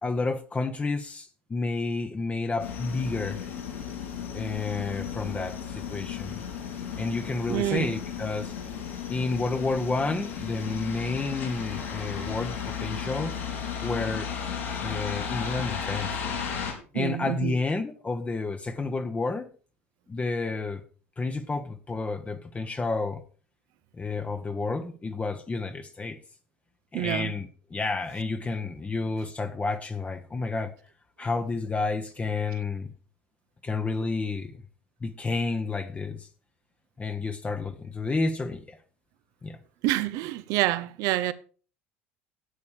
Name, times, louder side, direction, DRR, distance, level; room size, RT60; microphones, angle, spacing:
voice 1, 0.0-3.4 4.3-6.4 7.0-8.5 9.1-13.3 13.8-14.3 14.8-16.2 16.9-19.5 20.1-20.8 21.2-23.2 24.0-26.2 26.9-30.7 31.2-32.9 33.6-34.6 35.0-36.3 37.0-38.8 39.4-39.6, left 3 dB, 20° left, 1.1 m, -30 dB
sound 1, 2.6-16.7, left 7 dB, 75° left, 3.8 m, -34 dB
voice 2, 7.5-7.9 12.2-12.3 16.9-17.6 26.9-27.3 39.8-41.3, right 15 dB, 55° right, 0.8 m, -27 dB
11.5 x 8.4 x 5.0 m
figure-of-eight pair, 65°, 7 cm